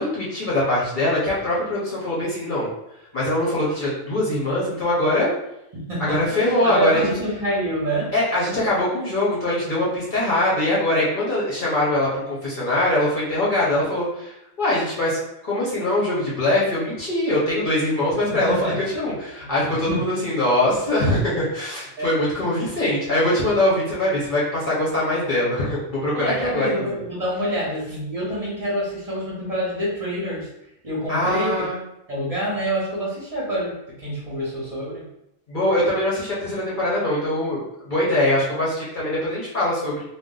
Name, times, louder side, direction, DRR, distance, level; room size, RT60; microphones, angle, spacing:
voice 1, 0.0-2.7 3.1-5.3 6.0-7.1 8.1-27.0 31.1-31.8 35.5-40.0, left 1 dB, 45° left, -7 dB, 0.8 m, -22 dB
voice 2, 5.9-8.1 18.1-18.8 19.4-19.5 19.9-20.0 22.0-22.1 26.1-30.5 30.8-31.7 32.1-35.0, right 1 dB, 35° right, -8 dB, 0.8 m, -27 dB
2.5 x 2.0 x 3.8 m, 0.83 s
omnidirectional pair, 1.3 m